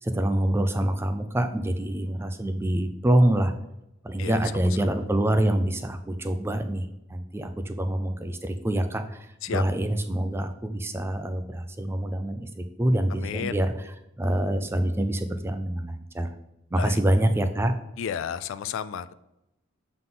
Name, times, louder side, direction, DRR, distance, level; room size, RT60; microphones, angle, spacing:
voice 1, 0.0-3.5 4.0-13.7 14.2-16.3 16.7-17.7, right 1 dB, 10° right, 8 dB, 0.3 m, -26 dB
voice 2, 13.1-13.6 16.7-17.0 18.0-19.2, left 7 dB, 70° left, 15 dB, 0.3 m, -32 dB
7.2 x 3.9 x 3.8 m, 0.87 s
head